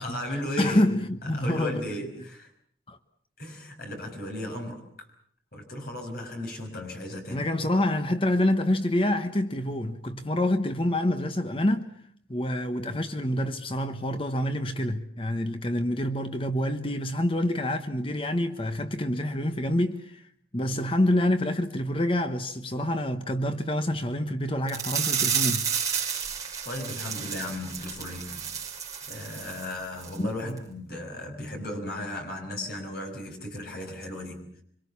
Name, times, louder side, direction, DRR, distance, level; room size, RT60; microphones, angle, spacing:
voice 1, 0.0-0.9 1.3-2.5 3.4-4.8 5.5-7.4 26.6-28.5 29.1-34.6, left 1 dB, 55° left, 6.2 m, -35 dB
voice 2, 0.6-1.9 2.9-3.0 7.3-11.9 12.3-20.2 20.5-25.7 30.2-30.6, left 1 dB, 30° left, 1.1 m, -27 dB
sound 1, 24.7-29.7 30.0-30.2 30.6-30.7, right 7 dB, 20° right, 5.2 m, -31 dB
27.0 x 25.0 x 7.2 m
head